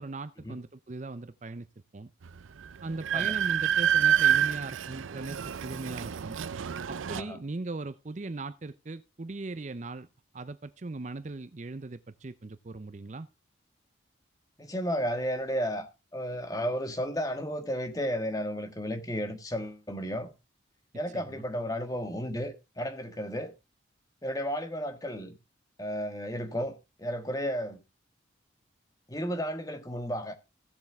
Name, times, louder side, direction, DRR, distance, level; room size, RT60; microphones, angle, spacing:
voice 1, 0.0-1.7 1.9-2.1 2.8-6.4 6.9-10.1 10.3-13.3 21.1-21.4, right 3 dB, 35° right, 0.5 m, -39 dB
Train, 2.2-2.3 2.7-7.2, right 9 dB, 90° right, 0.5 m, -27 dB
voice 2, 14.6-15.9 16.1-20.3 20.9-23.5 24.2-25.3 25.8-27.8 29.1-30.4, equal, 20° left, 1.6 m, -33 dB
16.5 x 7.4 x 3.5 m
head